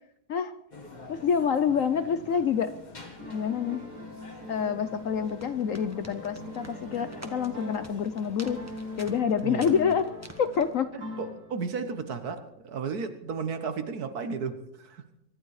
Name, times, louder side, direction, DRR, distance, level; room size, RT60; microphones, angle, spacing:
sound 1, 0.7-9.1, left 2 dB, 25° left, 2.0 m, -48 dB
voice 1, 1.1-2.7 3.3-3.8 4.5-8.6 9.0-10.1 10.4-10.9, left 7 dB, 60° left, 12 dB, 0.9 m, -27 dB
sound 2, 3.2-8.0 8.4-11.8, left 2 dB, 80° right, 7.6 m, -41 dB
sound 3, 5.2-10.8, right 1 dB, 10° right, 1.4 m, -48 dB
voice 2, 9.4-9.7 10.9-15.0, right 5 dB, 60° right, 10 dB, 1.7 m, -34 dB
24.0 x 12.0 x 4.8 m, 0.78 s
omnidirectional pair, 1.9 m